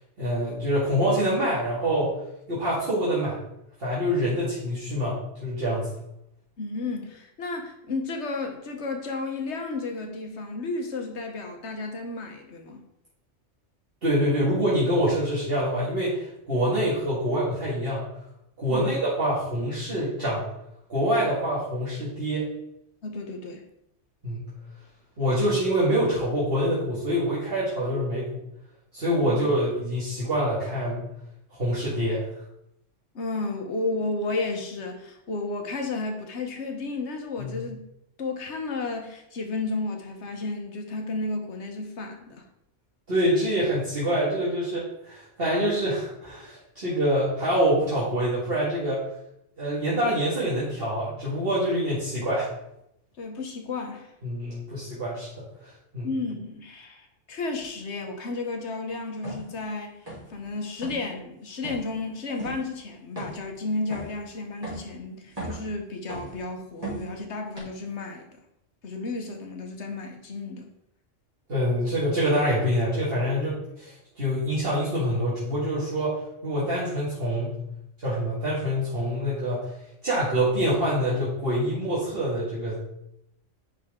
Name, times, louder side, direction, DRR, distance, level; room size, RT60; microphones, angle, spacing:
voice 1, 0.2-2.1 2.5-3.4 3.8-5.9 14.0-18.0 18.6-20.4 20.9-22.5 24.2-24.4 25.2-28.3 28.9-31.0 31.6-32.2 37.4-37.6 43.1-49.0 49.6-52.5 54.2-56.1 71.5-77.5 78.0-79.7 80.0-82.8, equal, 50° right, -9 dB, 2.1 m, -26 dB
voice 2, 6.6-12.8 18.7-19.0 23.0-23.6 29.2-29.4 33.1-37.8 38.2-42.4 53.2-54.1 56.0-59.9 60.3-68.4 68.8-70.7, left 3 dB, 65° left, 4 dB, 1.4 m, -32 dB
sound 1, 59.2-59.5 60.1-60.4 60.7-61.1 61.6-61.9 62.4-62.6 63.2-63.5 63.9-64.2 64.6-64.9 65.3-65.7 66.1-66.4 66.8-67.1 67.6-67.7, right 2 dB, 30° right, 3.0 m, -36 dB
10.0 x 4.1 x 3.7 m, 0.81 s
omnidirectional pair, 1.3 m